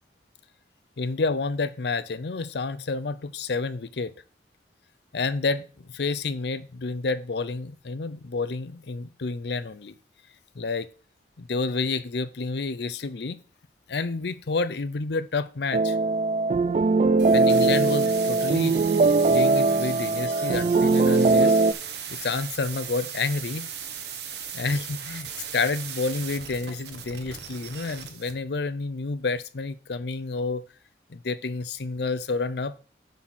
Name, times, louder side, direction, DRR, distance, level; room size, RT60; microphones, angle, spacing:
voice 1, 1.0-4.1 5.1-9.9 10.6-10.9 11.4-13.4 13.9-16.0 17.3-18.8 19.3-21.6 22.1-23.7 24.5-30.6 31.1-32.7, left 3 dB, 70° left, 0.6 m, -29 dB
sound 1, 15.7-21.7, right 3 dB, 40° right, 0.3 m, -21 dB
sound 2, 17.2-28.3, right 8 dB, 70° right, 1.2 m, -38 dB
7.4 x 4.2 x 6.2 m
head